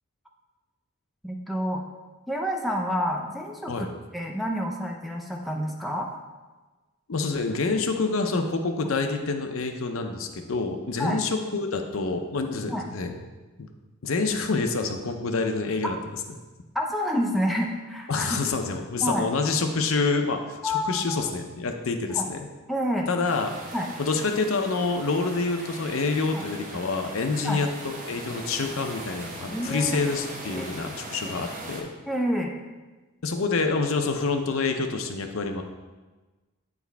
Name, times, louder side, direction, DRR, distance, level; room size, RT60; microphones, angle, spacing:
voice 1, 1.2-1.8 2.3-6.1 11.0-11.2 12.7-12.9 16.7-18.4 19.0-19.3 20.6-21.2 22.1-22.3 22.7-23.1 23.7-23.9 26.3-26.5 27.4-27.6 29.5-30.0 30.4-30.7 32.0-32.5, equal, ahead, 0 dB, 0.5 m, -28 dB
voice 2, 7.1-13.2 13.6-13.7 14.0-16.0 18.1-22.5 23.1-23.6 24.0-31.9 33.2-35.6, left 4 dB, 65° left, 5 dB, 0.6 m, -27 dB
sound 1, 23.2-31.8, right 1 dB, 35° right, 1.0 m, -40 dB
8.3 x 4.8 x 3.4 m, 1.2 s
head